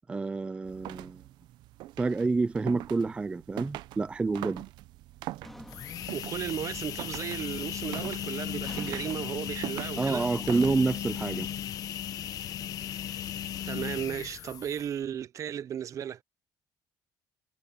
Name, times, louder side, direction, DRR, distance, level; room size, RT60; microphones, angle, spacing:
voice 1, 0.1-1.2 2.0-4.6 10.0-11.5, right 3 dB, 15° right, 0.3 m, -28 dB
sound 1, 0.6-11.2, right 16 dB, 80° right, 0.7 m, -43 dB
sound 2, 5.4-7.0 7.3-7.7 8.6-11.7, equal, ahead, 2.1 m, -51 dB
sound 3, 5.7-15.0, left 10 dB, 55° left, 1.2 m, -36 dB
voice 2, 6.1-10.3 13.7-16.2, right 9 dB, 45° right, 0.7 m, -35 dB
cardioid pair, 140°, 7 cm